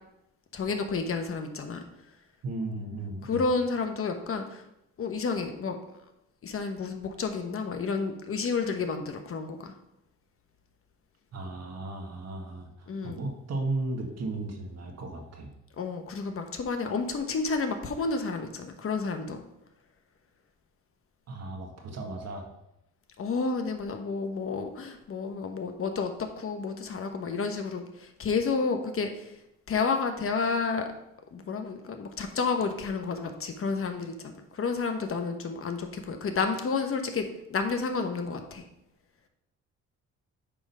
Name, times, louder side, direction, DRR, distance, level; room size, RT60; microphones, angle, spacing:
voice 1, 0.5-1.8 3.2-4.6 5.0-5.8 6.4-9.7 12.9-13.2 15.8-19.4 23.2-29.3 29.7-30.9 31.3-38.6, left 4 dB, 45° left, 6 dB, 1.1 m, -30 dB
voice 2, 2.4-3.4 11.3-15.5 21.3-22.5, right 2 dB, 60° right, 3 dB, 1.6 m, -35 dB
8.8 x 3.7 x 5.5 m, 0.85 s
cardioid pair, 90°, 30 cm